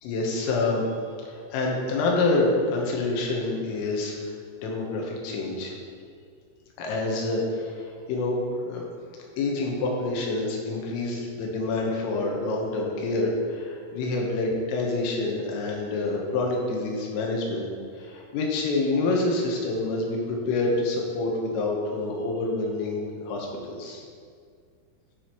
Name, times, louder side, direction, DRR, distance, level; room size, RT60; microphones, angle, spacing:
voice 1, 0.0-0.9 1.3-5.7 6.8-8.8 9.4-17.7 18.0-24.0, left 2 dB, 90° left, -1 dB, 3.9 m, -27 dB
12.0 x 7.0 x 3.1 m, 2.1 s
omnidirectional pair, 5.7 m